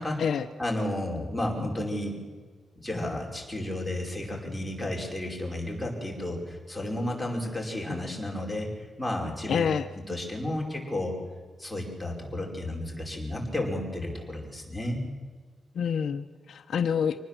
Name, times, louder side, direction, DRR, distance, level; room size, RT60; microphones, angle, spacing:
voice 1, 0.6-2.2 2.8-9.7 10.1-11.2 11.6-15.0, left 1 dB, 5° left, -1 dB, 5.2 m, -32 dB
voice 2, 9.5-9.9 15.7-17.2, left 7 dB, 65° left, 9 dB, 0.9 m, -27 dB
25.5 x 19.5 x 7.5 m, 1.5 s
wide cardioid pair, 155°, 0 cm